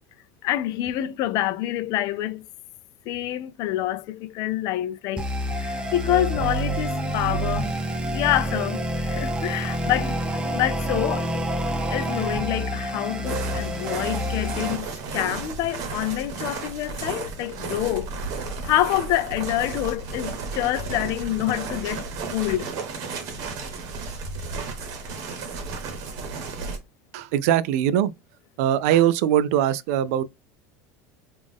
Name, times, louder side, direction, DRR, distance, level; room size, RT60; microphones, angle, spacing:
voice 1, 0.4-2.4 3.1-5.3 5.6-7.7 8.1-10.2 10.5-11.3 11.9-18.1 18.6-22.7, left 13 dB, 50° left, 0.4 m, -27 dB
sound 1, 5.2-14.8, right 1 dB, 10° right, 0.6 m, -27 dB
sound 2, 13.2-26.8, right 4 dB, 50° right, 1.0 m, -33 dB
voice 2, 27.1-28.1 28.6-30.2, right 11 dB, 75° right, 0.4 m, -21 dB
3.5 x 2.4 x 3.5 m
supercardioid pair, 145°, 8 cm